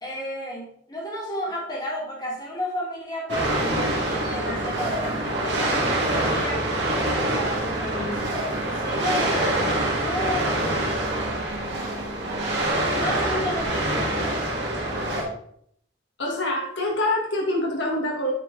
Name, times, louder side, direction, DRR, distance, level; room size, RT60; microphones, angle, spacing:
voice 1, 0.0-8.4 8.7-10.9 12.9-14.3, equal, 20° left, -3 dB, 1.9 m, -32 dB
sound 1, 3.3-15.2, right 1 dB, 60° right, 1.9 m, -25 dB
voice 2, 16.2-18.3, left 1 dB, 65° left, 0 dB, 1.5 m, -25 dB
9.0 x 4.7 x 3.7 m, 0.68 s
head